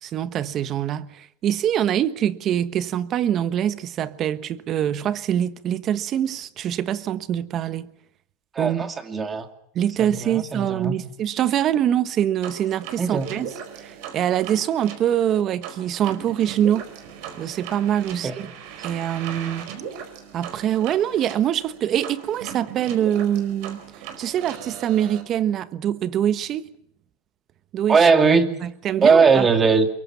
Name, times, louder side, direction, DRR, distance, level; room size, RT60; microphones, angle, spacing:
voice 1, 0.0-7.9 8.6-8.9 9.7-13.5 13.8-16.9 17.4-18.5 18.8-19.7 20.3-23.8 24.2-26.7 27.7-28.1 28.6-29.5, right 10 dB, 40° right, 1.2 m, -24 dB
voice 2, 8.5-9.5 10.0-10.9 13.0-13.3 18.1-18.3 27.9-28.5 29.0-29.9, right 5 dB, 20° right, 2.6 m, -19 dB
sound 1, 12.4-25.2, right 8 dB, 65° right, 4.6 m, -38 dB
23.5 x 22.5 x 7.2 m
supercardioid pair, 115°, 0 cm